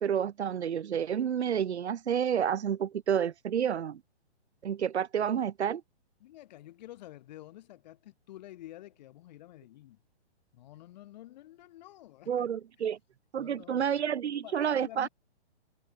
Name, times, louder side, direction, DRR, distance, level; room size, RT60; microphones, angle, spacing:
voice 1, 0.0-4.0 4.6-5.8 12.3-13.0 13.3-15.1, right 8 dB, 75° right, 0.9 m, -29 dB
voice 2, 6.2-10.0 10.5-12.5 12.8-12.9 13.3-13.9 14.2-15.1, left 14 dB, 40° left, 3.2 m, -50 dB
hypercardioid pair, 145°, 33 cm